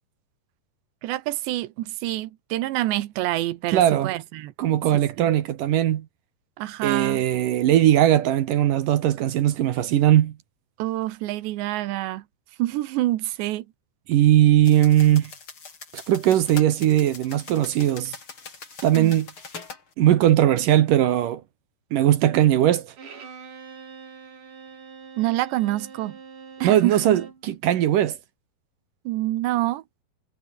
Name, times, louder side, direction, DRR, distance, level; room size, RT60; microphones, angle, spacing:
voice 1, 1.0-4.5 4.9-5.3 6.6-7.2 10.8-12.2 12.6-13.7 18.9-19.1 25.2-26.2 26.6-27.0 29.1-29.8, right 16 dB, 80° right, 3.3 m, -27 dB
voice 2, 3.7-4.1 4.6-6.1 6.8-10.3 14.1-15.3 15.9-18.1 18.8-19.3 20.0-21.4 21.9-22.9 26.6-28.2, right 12 dB, 65° right, 2.4 m, -19 dB
sound 1, 14.6-19.8, left 5 dB, 30° left, 3.8 m, -42 dB
Bowed string instrument, 23.0-27.5, right 5 dB, 50° right, 5.6 m, -43 dB
omnidirectional pair, 5.0 m